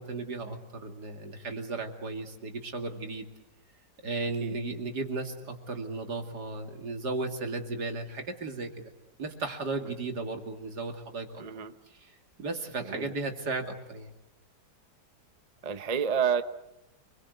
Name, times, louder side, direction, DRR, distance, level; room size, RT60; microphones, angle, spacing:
voice 1, 0.0-3.3 4.0-8.7 9.2-11.3 12.0-12.1 12.4-14.1, right 3 dB, 70° right, 4 dB, 3.0 m, -35 dB
voice 2, 11.4-11.7 12.8-13.1 15.6-16.4, right 7 dB, 30° right, 10 dB, 0.8 m, -29 dB
28.0 x 22.0 x 8.1 m, 0.90 s
omnidirectional pair, 1.8 m